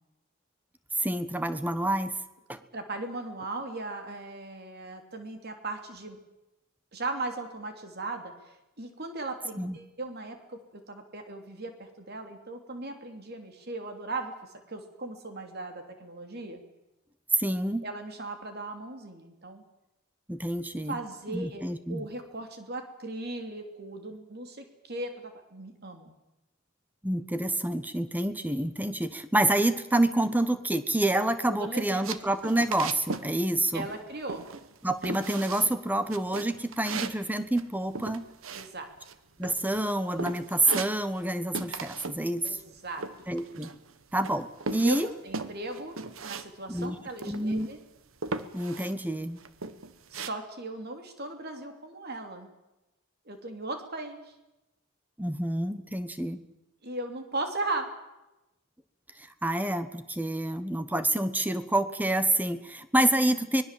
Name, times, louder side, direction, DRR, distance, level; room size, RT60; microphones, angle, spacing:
voice 1, 1.0-2.1 2.5-2.6 9.6-9.8 17.3-17.8 20.3-21.0 21.3-22.1 27.0-33.9 34.8-38.3 39.4-42.6 43.3-43.7 44.1-45.1 46.7-47.0 47.3-47.7 48.5-49.4 55.2-56.4 59.2-63.6, right 1 dB, 10° right, 11 dB, 1.1 m, -28 dB
voice 2, 2.7-6.2 6.9-14.3 14.7-16.6 17.8-19.6 20.9-26.1 31.5-32.1 33.7-34.5 38.5-38.9 42.4-43.0 44.8-45.0 45.2-45.9 46.2-47.8 50.1-52.5 53.2-54.3 56.8-57.9, right 2 dB, 45° right, 5 dB, 3.2 m, -37 dB
sound 1, 32.0-33.3 33.6-34.0 34.3-34.8 35.0-35.7 36.1-39.1 39.4-39.9 40.2-41.3 41.5-42.2 42.4-43.9 44.2-46.5 46.8-46.9 47.2-47.8 48.2-48.9 49.4-50.3, right 4 dB, 65° right, 1.2 m, -37 dB
24.5 x 20.5 x 7.7 m, 0.97 s
head